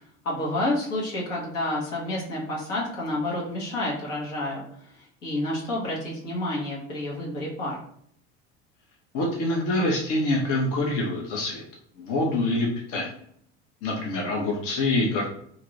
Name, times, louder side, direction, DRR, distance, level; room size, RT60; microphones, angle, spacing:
voice 1, 0.2-7.8, left 1 dB, 85° left, -4 dB, 1.2 m, -29 dB
voice 2, 9.1-11.6 12.0-13.1 13.8-15.3, left 2 dB, 55° left, 0 dB, 0.7 m, -25 dB
2.6 x 2.4 x 3.1 m, 0.66 s
hypercardioid pair, 80°, 37 cm